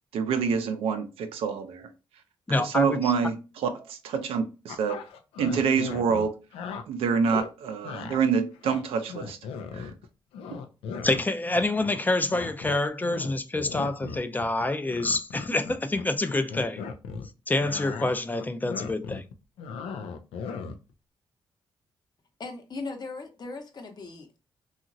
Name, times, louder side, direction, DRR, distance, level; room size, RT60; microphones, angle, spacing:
voice 1, 0.1-1.9 2.6-5.0 5.4-6.4 6.9-9.4 9.7-9.9, right 6 dB, 85° right, 0.5 m, -27 dB
voice 2, 2.5-3.0 11.0-16.8 17.5-19.3, left 2 dB, 20° left, 0.4 m, -27 dB
sound 1, 4.7-6.8 7.3-7.5 7.8-8.2 8.5-10.0 10.3-12.0 12.3-17.3 17.6-20.9, left 5 dB, 90° left, 0.4 m, -37 dB
voice 3, 22.4-24.4, left 3 dB, 45° left, 0.8 m, -38 dB
2.9 x 2.4 x 2.6 m
cardioid pair, 60°, 10 cm